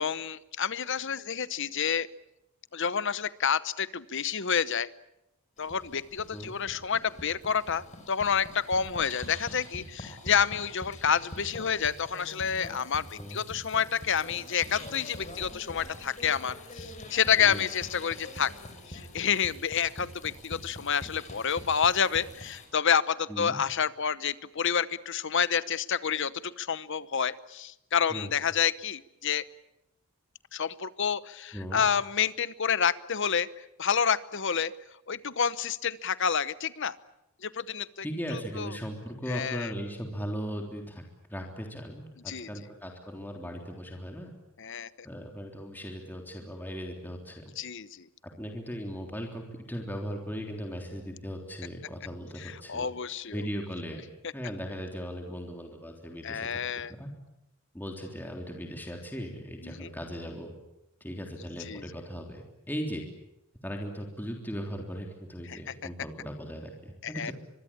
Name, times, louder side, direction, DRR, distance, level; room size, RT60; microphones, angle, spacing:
voice 1, 0.0-2.1 2.7-4.9 5.6-18.5 18.9-29.4 30.5-34.7 35.1-37.0 37.4-38.0 38.3-38.7 39.3-39.7 42.3-42.5 44.6-44.9 47.6-48.1 52.4-53.4 56.2-56.9 59.6-59.9 61.7-61.8 65.5-65.6 67.0-67.3, left 7 dB, 55° left, 16 dB, 1.0 m, -29 dB
sound 1, 5.6-22.7, left 1 dB, 35° left, 5.7 m, -45 dB
voice 2, 31.5-31.8 38.0-41.0 41.3-44.3 45.0-47.4 48.4-52.9 53.3-54.0 54.3-56.6 57.0-57.1 57.7-60.5 61.0-63.1 63.6-67.3, equal, 10° left, 2 dB, 3.5 m, -38 dB
24.5 x 23.0 x 8.8 m, 0.86 s
head